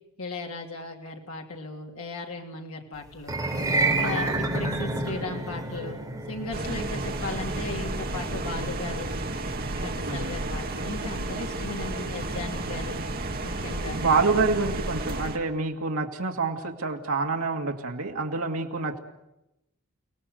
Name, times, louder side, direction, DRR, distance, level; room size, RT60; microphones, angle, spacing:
voice 1, 0.2-3.4 3.9-6.0 6.3-9.1 9.7-13.0 13.4-14.0, left 3 dB, 70° left, 1 dB, 2.9 m, -36 dB
sound 1, 3.2-13.5, right 2 dB, 15° right, 4.3 m, -31 dB
sound 2, 6.5-15.4, right 2 dB, 45° right, 2.0 m, -32 dB
voice 2, 10.0-10.4 13.9-19.0, right 4 dB, 75° right, 2 dB, 2.3 m, -27 dB
30.0 x 18.0 x 7.9 m, 0.92 s
head